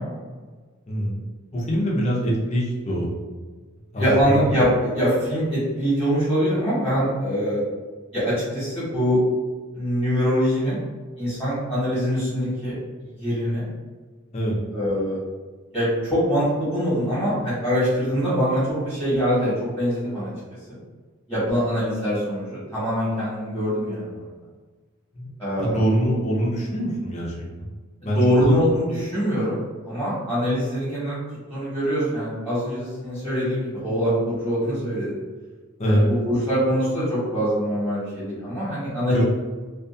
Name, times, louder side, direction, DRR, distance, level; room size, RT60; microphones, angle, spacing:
voice 1, 0.9-1.2 1.5-3.1 3.9-4.1 14.3-14.6 25.2-25.3 25.6-27.7 28.0-28.6 35.8-36.0 39.1-39.2, equal, 30° left, -3 dB, 0.5 m, -23 dB
voice 2, 4.0-7.6 8.1-9.2 9.7-10.8 11.2-12.7 13.0-13.6 14.7-15.2 15.7-20.3 20.7-20.8 21.3-24.3 25.4-25.8 28.0-29.6 29.8-31.2 31.5-35.2 35.8-39.2, equal, 5° left, -12 dB, 1.2 m, -23 dB
2.4 x 2.4 x 2.5 m, 1.4 s
head